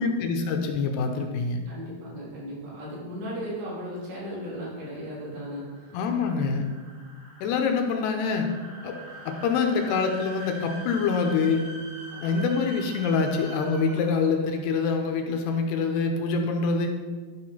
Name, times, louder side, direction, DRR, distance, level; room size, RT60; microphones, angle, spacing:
voice 1, 0.0-1.6 5.9-6.6 7.4-8.5 8.8-9.0 9.3-11.7 12.2-16.9, left 4 dB, 80° left, 3 dB, 2.8 m, -25 dB
voice 2, 1.7-5.7 12.1-12.5, equal, 80° right, -8 dB, 5.6 m, -36 dB
sound 1, 4.0-14.4, right 2 dB, 60° right, 4.7 m, -44 dB
12.0 x 4.8 x 5.6 m, 1.4 s
omnidirectional pair, 5.0 m